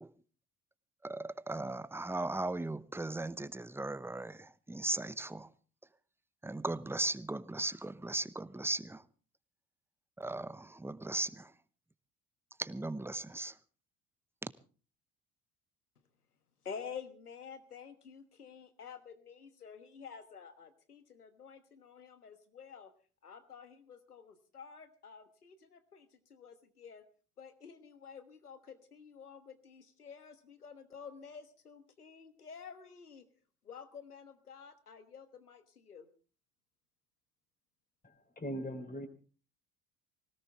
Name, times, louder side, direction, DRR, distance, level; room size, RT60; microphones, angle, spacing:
voice 1, 1.0-5.5 6.4-9.0 10.2-11.5 12.6-13.5 14.4-14.5, right 2 dB, 5° right, 0.9 m, -37 dB
voice 2, 16.6-22.9 23.2-27.0 27.4-33.2 33.6-36.1, left 6 dB, 90° left, 1.4 m, -50 dB
voice 3, 38.0-39.1, equal, 20° left, 3.9 m, -40 dB
20.5 x 18.5 x 3.4 m
figure-of-eight pair, 55°, 44 cm